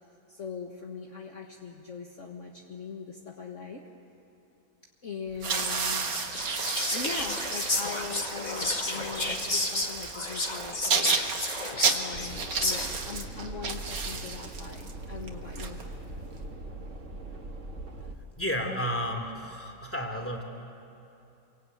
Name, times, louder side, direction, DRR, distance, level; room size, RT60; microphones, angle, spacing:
voice 1, 0.3-3.8 5.0-6.1 6.9-11.2 11.9-15.8, left 5 dB, 45° left, 1 dB, 1.8 m, -41 dB
sound 1, 5.3-16.4, right 5 dB, 75° right, 2.3 m, -32 dB
Whispering, 5.6-13.1, left 2 dB, 25° left, 2.0 m, -32 dB
sound 2, 12.1-18.1, right 2 dB, 40° right, 2.2 m, -41 dB
voice 2, 18.4-20.4, equal, 5° left, 2 dB, 2.8 m, -32 dB
27.5 x 23.5 x 9.2 m, 2.8 s
omnidirectional pair, 1.9 m